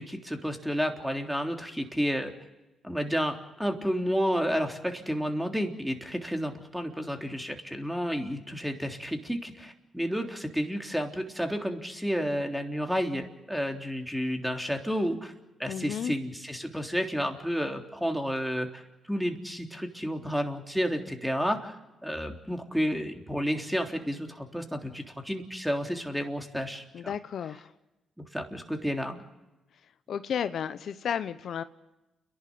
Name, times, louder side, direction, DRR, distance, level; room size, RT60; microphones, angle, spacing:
voice 1, 0.0-2.3 2.8-15.3 15.6-18.8 19.1-21.8 22.0-27.1 28.2-29.2, equal, ahead, 4 dB, 3.6 m, -31 dB
voice 2, 15.7-16.1 26.9-27.7 30.1-31.6, left 8 dB, 70° left, 12 dB, 0.8 m, -32 dB
30.0 x 11.5 x 9.6 m, 1.0 s
supercardioid pair, 60°, 0 cm